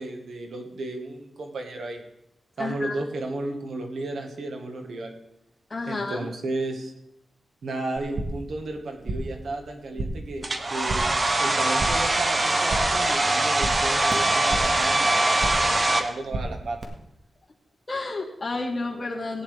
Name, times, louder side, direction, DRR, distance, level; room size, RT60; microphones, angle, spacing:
voice 1, 0.0-2.0 2.6-5.2 5.9-6.9 7.6-16.8, right 2 dB, 80° right, 4 dB, 1.6 m, -33 dB
voice 2, 2.6-2.9 5.7-6.3 17.9-19.4, left 3 dB, 30° left, -3 dB, 2.5 m, -31 dB
sound 1, 8.0-8.5 8.8-9.4 9.7-10.3 10.6-11.2 11.5-12.2 12.4-13.1 13.3-14.8 15.1-15.8 16.0-16.8, right 2 dB, 50° right, 1.8 m, -33 dB
Domestic sounds home sounds, 10.4-16.0, right 2 dB, 35° right, 1.1 m, -22 dB
15.5 x 9.9 x 3.5 m, 0.80 s
wide cardioid pair, 100°, 0 cm